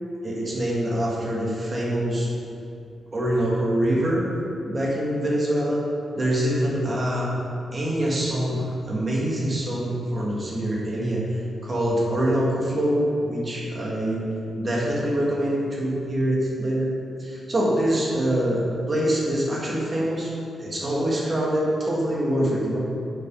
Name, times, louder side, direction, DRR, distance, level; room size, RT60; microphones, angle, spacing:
voice 1, 0.2-2.3 3.1-4.3 4.6-5.9 6.2-7.3 7.7-14.2 14.6-16.9 17.2-20.3 20.6-22.8, right 1 dB, 30° right, -4 dB, 1.6 m, -24 dB
6.4 x 5.0 x 5.5 m, 2.7 s
wide cardioid pair, 115°, 0 cm